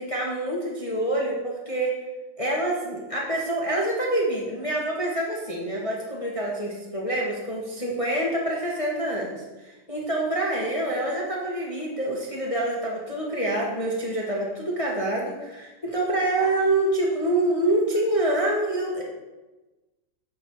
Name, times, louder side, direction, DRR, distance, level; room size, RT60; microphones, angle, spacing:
voice 1, 0.0-1.9 2.4-19.0, right 1 dB, 25° left, -3 dB, 0.8 m, -26 dB
8.7 x 3.4 x 5.9 m, 1.1 s
omnidirectional pair, 2.0 m